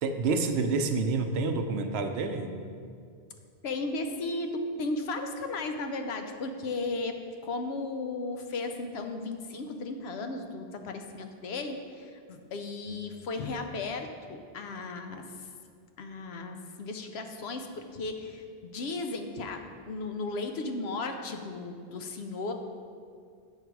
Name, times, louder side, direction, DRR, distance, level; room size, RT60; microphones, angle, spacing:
voice 1, 0.0-2.5, right 4 dB, 75° right, 7 dB, 0.8 m, -28 dB
voice 2, 3.6-7.2 7.4-15.5 16.0-22.5, left 3 dB, 75° left, 6 dB, 0.9 m, -35 dB
7.5 x 5.4 x 4.6 m, 2.2 s
omnidirectional pair, 1.1 m